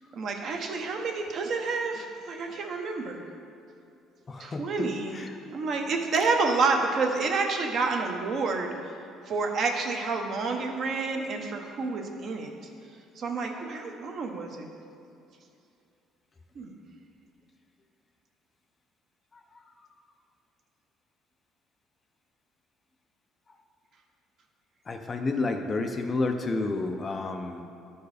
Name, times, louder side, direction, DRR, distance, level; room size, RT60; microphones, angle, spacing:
voice 1, 0.1-3.2 4.4-5.2 5.5-8.7 9.3-12.5 13.2-14.7 16.6-16.7, right 4 dB, 40° right, 3 dB, 0.8 m, -29 dB
voice 2, 4.3-5.4 19.3-19.4 24.9-27.6, left 3 dB, 20° left, 5 dB, 0.4 m, -30 dB
11.5 x 4.6 x 4.9 m, 2.5 s
cardioid pair, 160°, 0 cm